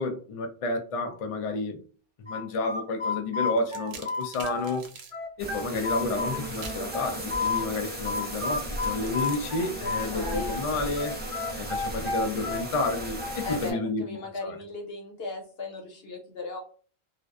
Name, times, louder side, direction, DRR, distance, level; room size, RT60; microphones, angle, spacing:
voice 1, 0.0-1.8 2.2-4.9 5.4-11.1 11.5-14.1 14.4-14.6, left 2 dB, 55° left, 0.4 m, -30 dB
sound 1, 2.3-4.8 5.1-7.6 8.0-10.6 10.9-13.6, left 4 dB, 30° right, 1.1 m, -31 dB
sound 2, 3.5-5.2 6.5-6.9 8.7-11.8, right 5 dB, 80° right, 0.8 m, -47 dB
sound 3, 5.4-13.7, right 1 dB, 15° right, 0.4 m, -36 dB
voice 2, 9.8-10.6 13.4-16.6, left 3 dB, 75° left, 1.1 m, -36 dB
2.5 x 2.1 x 2.3 m
omnidirectional pair, 1.0 m